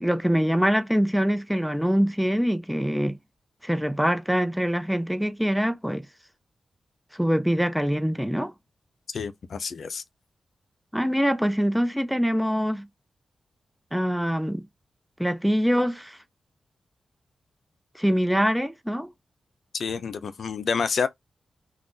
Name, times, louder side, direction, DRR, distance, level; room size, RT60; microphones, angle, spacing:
voice 1, 0.0-3.2 3.6-6.1 7.1-8.5 10.9-12.9 13.9-14.6 15.2-16.2 17.9-19.1, equal, ahead, 0.5 m, -24 dB
voice 2, 9.1-10.0 19.7-21.1, left 5 dB, 70° left, 0.5 m, -28 dB
2.4 x 2.4 x 3.7 m
wide cardioid pair, 90°, 0 cm